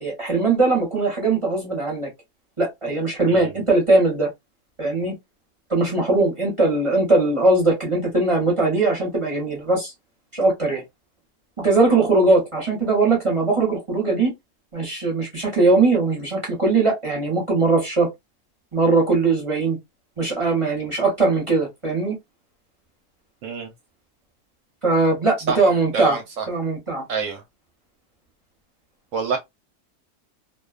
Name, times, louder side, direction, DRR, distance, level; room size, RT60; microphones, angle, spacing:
voice 1, 0.0-2.1 2.6-4.3 4.8-5.1 5.7-9.9 10.3-10.8 11.6-14.3 14.7-18.1 18.7-19.8 20.2-22.2 24.8-26.2 26.5-27.0, right 3 dB, 30° right, 0.6 m, -20 dB
voice 2, 25.5-26.5 27.1-27.4 29.1-29.4, right 5 dB, 65° right, 0.8 m, -27 dB
2.4 x 2.2 x 2.3 m
omnidirectional pair, 1.7 m